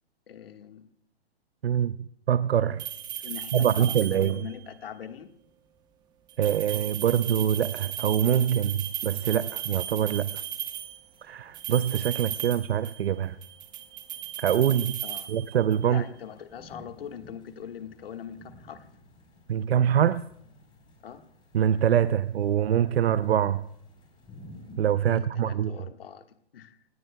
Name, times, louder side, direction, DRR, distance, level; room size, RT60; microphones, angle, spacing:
voice 1, 0.3-0.9 3.2-5.3 15.0-15.4 15.8-18.9 21.0-21.2 25.1-26.8, left 8 dB, 65° left, 1.6 m, -42 dB
voice 2, 1.6-2.8 3.5-4.4 6.4-10.4 11.2-13.4 14.4-15.0 15.3-16.0 19.5-20.2 21.5-23.6 24.8-25.8, right 9 dB, 80° right, 0.6 m, -24 dB
sound 1, 2.8-4.5 6.3-11.0 11.5-13.1 13.4-15.9, right 11 dB, 15° right, 0.9 m, -36 dB
sound 2, 8.2-24.8, left 2 dB, 15° left, 4.3 m, -55 dB
28.5 x 19.0 x 2.3 m
hypercardioid pair, 150°, 31 cm